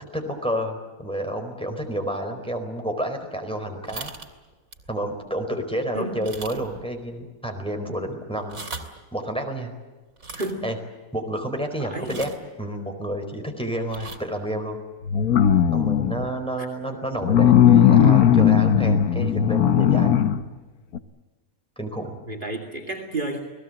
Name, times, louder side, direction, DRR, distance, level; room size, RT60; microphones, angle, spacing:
voice 1, 0.1-4.1 4.9-8.6 9.1-9.7 10.6-10.7 11.1-12.3 12.6-14.8 15.7-20.2 21.8-22.2, right 1 dB, 5° left, 3 dB, 4.4 m, -30 dB
sound 1, 3.8-4.3 4.7-4.9 5.4-5.5 6.2-6.8 7.1-7.2 8.4-9.0 10.2-10.5 12.0-12.5 13.9-14.2, right 4 dB, 70° right, 3.0 m, -38 dB
voice 2, 10.3-10.7 11.8-12.2 16.6-16.7 22.3-23.4, right 2 dB, 35° right, 4 dB, 2.8 m, -31 dB
sound 2, 15.0-16.3 17.2-20.4 20.9-21.0, left 9 dB, 80° left, 1.6 m, -17 dB
29.5 x 19.5 x 7.9 m, 1.3 s
omnidirectional pair, 1.5 m